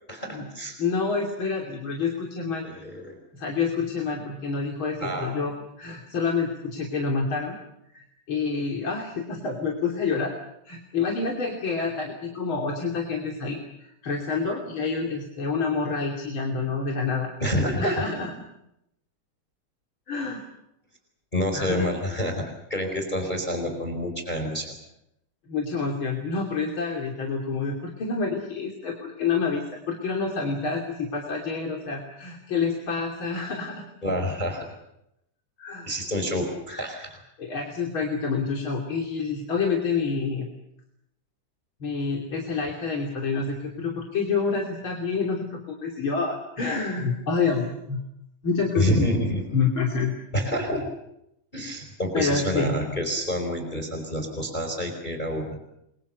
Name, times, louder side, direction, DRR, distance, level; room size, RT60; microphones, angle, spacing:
voice 1, 0.1-0.8 2.6-3.1 5.0-5.4 17.4-18.1 21.3-24.7 34.0-34.7 35.8-37.2 48.7-49.4 50.3-50.9 51.5-55.6, equal, 15° left, 5 dB, 4.4 m, -28 dB
voice 2, 0.8-2.7 3.3-7.6 7.9-10.3 10.7-17.3 17.8-18.3 20.1-20.4 21.5-21.9 25.5-33.9 35.6-35.9 37.4-40.5 41.8-48.0 48.4-49.1 49.5-50.1 52.1-52.8, left 4 dB, 40° left, 1 dB, 3.5 m, -28 dB
29.5 x 24.0 x 6.8 m, 0.81 s
omnidirectional pair, 3.7 m